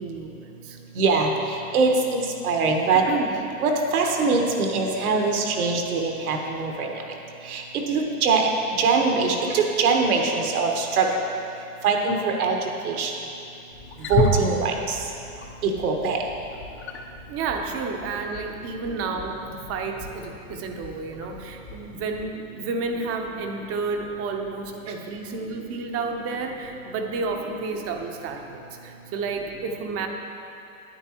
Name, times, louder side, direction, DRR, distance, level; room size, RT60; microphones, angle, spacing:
voice 1, 0.0-0.8 3.1-3.4 17.3-30.1, right 4 dB, 30° right, 4 dB, 0.8 m, -31 dB
voice 2, 0.9-3.0 3.6-6.9 7.4-8.5 8.8-11.1 11.8-12.6 12.8-13.1 14.1-15.0 15.6-16.2, right 4 dB, 70° right, 2 dB, 1.4 m, -22 dB
Wild animals, 13.7-22.2, left 3 dB, 25° left, 0.8 m, -33 dB
10.5 x 9.0 x 3.0 m, 2.7 s
hypercardioid pair, 100°, 46 cm